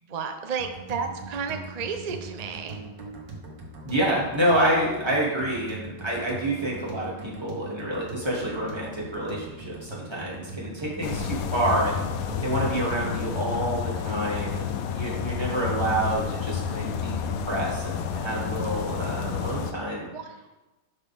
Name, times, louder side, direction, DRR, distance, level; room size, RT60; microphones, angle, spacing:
voice 1, 0.1-2.8 20.1-20.5, right 5 dB, 60° right, 5 dB, 0.4 m, -32 dB
The Plan - Upbeat Loop - (No Voice Edit), 0.6-19.8, right 3 dB, 90° right, 2.0 m, -41 dB
voice 2, 3.8-12.0 12.4-20.1, right 1 dB, 15° right, -5 dB, 2.5 m, -28 dB
sound 1, 11.0-19.7, left 8 dB, 65° left, 0.9 m, -30 dB
11.5 x 5.8 x 3.6 m, 1.0 s
omnidirectional pair, 1.9 m